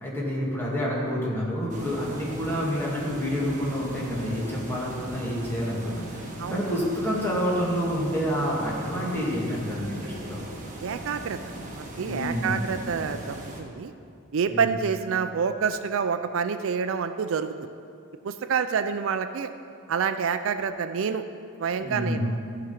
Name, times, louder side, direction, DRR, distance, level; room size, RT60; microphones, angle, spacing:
voice 1, 0.0-6.0 6.5-10.4 12.0-12.8 14.5-14.8 21.8-22.3, equal, 10° left, -6 dB, 2.2 m, -28 dB
sound 1, 1.7-13.6, right 1 dB, 40° right, 1.4 m, -39 dB
voice 2, 10.8-11.4 11.8-13.9 14.3-17.7 18.2-19.5 19.9-21.2 21.6-22.4, right 6 dB, 65° right, 10 dB, 0.4 m, -27 dB
15.0 x 5.0 x 5.8 m, 2.4 s
head